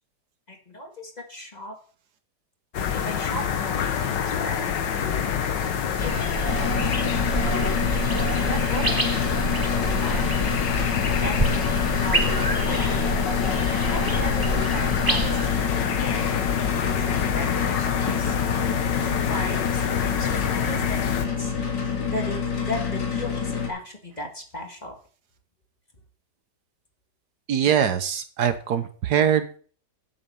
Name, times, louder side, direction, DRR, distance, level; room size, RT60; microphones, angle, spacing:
voice 1, 0.5-1.8 2.9-5.3 6.0-7.6 8.5-9.4 9.8-10.3 11.2-12.8 13.9-15.5 15.8-18.4 19.0-21.0 21.4-21.6 22.1-22.4 22.7-25.0, left 1 dB, 25° left, 2 dB, 1.8 m, -37 dB
sound 1, 2.7-21.3, left 8 dB, 85° left, 1.7 m, -27 dB
sound 2, 6.0-15.5, right 2 dB, 15° right, 1.0 m, -29 dB
sound 3, 6.5-23.7, left 6 dB, 70° left, 2.4 m, -28 dB
voice 2, 27.5-29.6, right 8 dB, 70° right, 10 dB, 1.4 m, -22 dB
8.3 x 7.3 x 7.0 m, 0.43 s
omnidirectional pair, 1.9 m